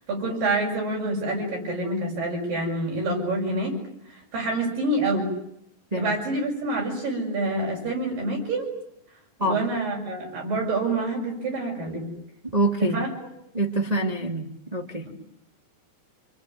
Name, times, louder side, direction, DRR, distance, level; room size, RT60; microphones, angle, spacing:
voice 1, 0.1-3.8 4.1-5.3 5.9-8.7 9.4-12.1 12.8-13.1, right 2 dB, 65° right, -1 dB, 8.3 m, -27 dB
voice 2, 12.5-13.0 13.5-15.1, right 1 dB, 15° right, 0 dB, 1.7 m, -25 dB
28.5 x 20.5 x 9.4 m, 0.79 s
omnidirectional pair, 4.2 m